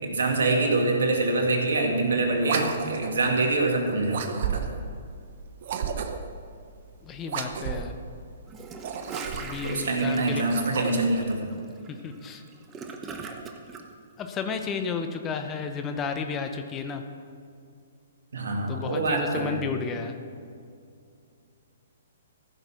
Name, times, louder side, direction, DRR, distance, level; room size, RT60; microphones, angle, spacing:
voice 1, 0.0-4.2 4.5-4.7 9.6-11.5 18.3-19.6, right 2 dB, 70° right, 1 dB, 2.2 m, -25 dB
sound 1, 2.4-3.2 4.1-4.9 5.6-6.4 7.2-8.0 8.7-9.7 10.3-11.2, right 7 dB, 55° right, 1.0 m, -32 dB
voice 2, 7.0-7.9 9.4-10.4 11.9-12.4 14.2-17.0 18.7-20.2, left 5 dB, 20° left, 6 dB, 0.9 m, -32 dB
Gurgling / Toilet flush, 8.5-13.8, right 4 dB, 20° right, 1.0 m, -41 dB
15.0 x 6.5 x 6.2 m, 2.3 s
hypercardioid pair, 125°, 0 cm